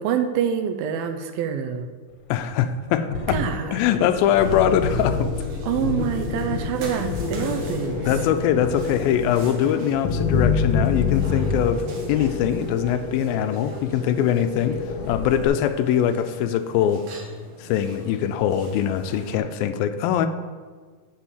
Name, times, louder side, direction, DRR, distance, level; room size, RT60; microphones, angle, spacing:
voice 1, 0.0-1.9 3.3-4.1 5.6-8.1, right 8 dB, 90° right, 7 dB, 2.6 m, -26 dB
voice 2, 2.3-3.4 3.7-5.3 8.1-14.8 15.1-17.1 17.6-20.3, left 9 dB, 90° left, 10 dB, 2.5 m, -22 dB
sound 1, 3.1-15.5, left 4 dB, 65° left, 1.9 m, -27 dB
sound 2, 3.9-19.4, right 2 dB, 65° right, 2.8 m, -41 dB
10.5 x 4.8 x 7.2 m, 1.5 s
omnidirectional pair, 4.1 m